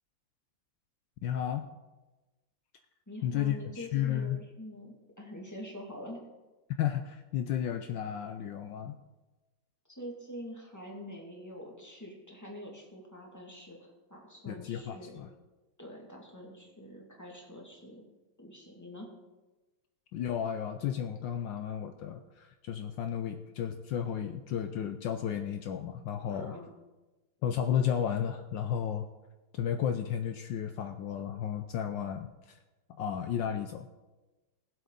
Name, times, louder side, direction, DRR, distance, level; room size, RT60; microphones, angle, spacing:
voice 1, 1.2-1.7 3.2-4.4 6.8-9.0 14.5-15.3 20.1-26.6 27.4-29.1 29.5-32.6 33.0-33.9, left 9 dB, 75° left, 7 dB, 1.2 m, -33 dB
voice 2, 3.1-6.2 9.9-15.2 15.8-18.0 18.4-19.1 26.3-26.7, left 1 dB, 10° left, -2 dB, 2.2 m, -45 dB
19.5 x 7.8 x 3.9 m, 1.1 s
omnidirectional pair, 2.2 m